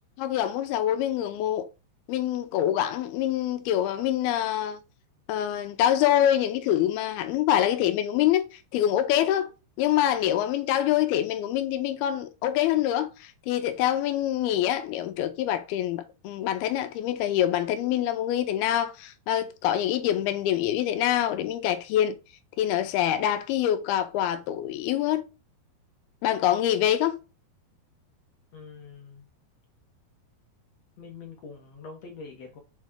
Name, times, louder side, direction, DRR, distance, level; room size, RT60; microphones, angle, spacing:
voice 1, 0.2-1.7 2.1-4.8 5.3-9.5 9.8-22.2 22.6-25.3 26.2-27.2, left 11 dB, 85° left, 2.6 m, -25 dB
voice 2, 28.5-29.3 31.0-32.6, left 5 dB, 60° left, 1.8 m, -44 dB
7.4 x 4.2 x 3.6 m
omnidirectional pair, 4.5 m